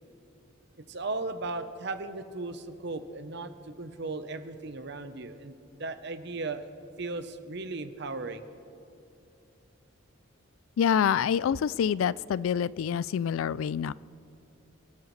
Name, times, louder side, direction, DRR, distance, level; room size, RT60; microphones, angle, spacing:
voice 1, 0.8-6.7 7.0-8.5, right 3 dB, 55° right, 9 dB, 0.9 m, -36 dB
voice 2, 10.8-13.9, left 8 dB, 85° left, 19 dB, 0.3 m, -26 dB
28.5 x 12.0 x 3.2 m, 2.8 s
head